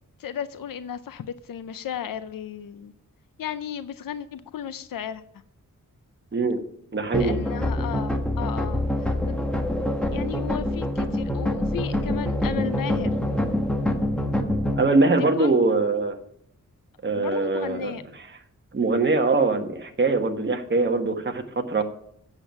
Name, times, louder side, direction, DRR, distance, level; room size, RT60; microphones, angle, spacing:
voice 1, 0.2-2.9 3.4-5.2 7.1-8.9 10.1-13.2 15.4-15.5 17.1-18.0, left 9 dB, 85° left, 13 dB, 0.6 m, -34 dB
voice 2, 6.9-7.4 14.8-16.1 17.0-18.4 18.7-21.8, right 3 dB, 35° right, 5 dB, 1.4 m, -23 dB
sound 1, 7.1-14.8, left 1 dB, 5° left, 1.3 m, -25 dB
8.1 x 7.7 x 7.1 m, 0.69 s
wide cardioid pair, 105°, 33 cm